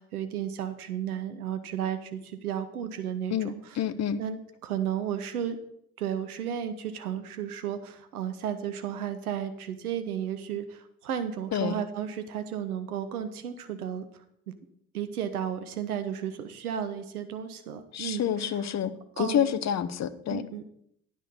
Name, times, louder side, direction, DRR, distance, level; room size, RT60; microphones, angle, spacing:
voice 1, 0.0-3.8 4.2-5.6 6.0-14.1 14.9-18.6 19.2-19.6 20.3-20.6, right 9 dB, 85° right, 9 dB, 0.7 m, -33 dB
voice 2, 3.3-4.2 11.5-11.8 17.9-20.4, left 9 dB, 40° left, 13 dB, 0.8 m, -28 dB
10.0 x 6.3 x 5.3 m, 0.71 s
figure-of-eight pair, 50°, 43 cm